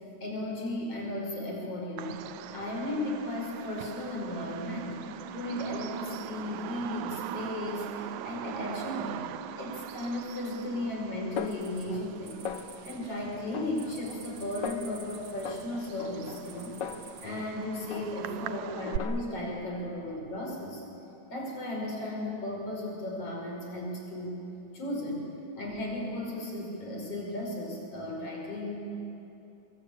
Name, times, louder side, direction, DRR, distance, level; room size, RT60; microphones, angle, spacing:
voice 1, 0.2-2.2 2.5-5.0 5.3-9.2 9.6-12.4 12.8-20.8 21.3-24.4 24.7-25.2 25.6-28.8, left 1 dB, 50° left, 0 dB, 6.5 m, -35 dB
Bird vocalization bird call bird song, 2.0-19.0, right 12 dB, 80° right, 2.1 m, -42 dB
Snare drum, 11.4-12.2 12.5-13.0 13.5-14.3 14.6-15.0 15.5-17.6 17.9-18.4 18.9-19.6, left 7 dB, 80° left, 1.0 m, -40 dB
sound 1, 11.4-12.9 13.2-15.8 16.3-17.3, right 5 dB, 60° right, 3.6 m, -50 dB
24.0 x 23.0 x 8.8 m, 2.9 s
omnidirectional pair, 3.4 m